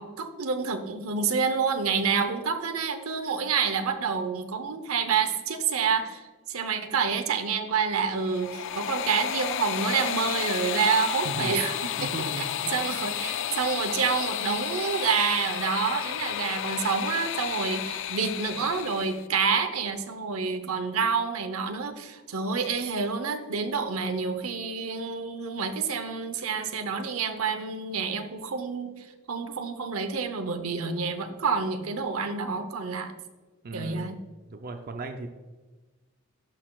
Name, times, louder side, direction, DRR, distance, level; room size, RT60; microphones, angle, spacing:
voice 1, 0.0-11.7 12.0-12.1 12.4-12.5 12.7-33.1 33.7-34.2, right 5 dB, 80° right, 8 dB, 0.8 m, -28 dB
sound 1, 8.1-19.2, left 10 dB, 60° left, 0.3 m, -32 dB
voice 2, 11.2-11.6 12.0-12.9 33.6-34.2 34.5-35.3, right 2 dB, 45° right, 5 dB, 0.5 m, -37 dB
11.5 x 6.6 x 2.3 m, 1.3 s
head